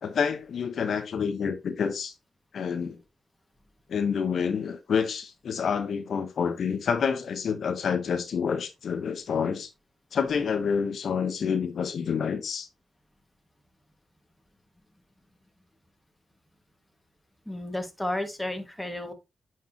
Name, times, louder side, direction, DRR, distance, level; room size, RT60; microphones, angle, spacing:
voice 1, 0.0-2.1 2.5-3.0 3.9-9.7 10.1-12.7, left 6 dB, 70° left, 0.9 m, -28 dB
voice 2, 17.5-19.1, left 1 dB, 10° left, 1.7 m, -32 dB
9.3 x 4.7 x 2.8 m
cardioid pair, 70°, 0 cm